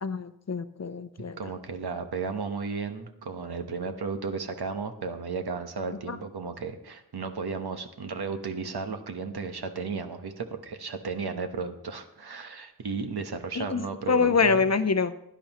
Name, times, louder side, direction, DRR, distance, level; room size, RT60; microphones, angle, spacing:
voice 1, 0.0-1.4 6.1-6.2 13.6-15.1, left 5 dB, 45° left, 12 dB, 0.6 m, -25 dB
voice 2, 1.4-14.7, right 5 dB, 80° right, 7 dB, 1.1 m, -34 dB
16.0 x 11.0 x 3.0 m, 0.83 s
wide cardioid pair, 100°, 38 cm